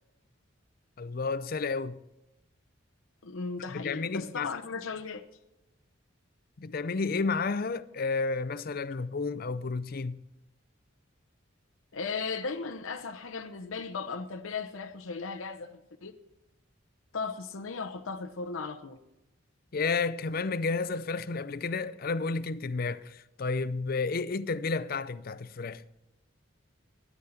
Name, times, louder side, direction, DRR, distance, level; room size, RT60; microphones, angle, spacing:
voice 1, 1.0-2.0 3.7-4.5 6.6-10.2 19.7-25.8, left 4 dB, 45° left, 0.5 m, -31 dB
voice 2, 3.2-5.2 11.9-16.1 17.1-19.0, left 4 dB, 90° left, 0.8 m, -36 dB
13.5 x 10.0 x 5.8 m
head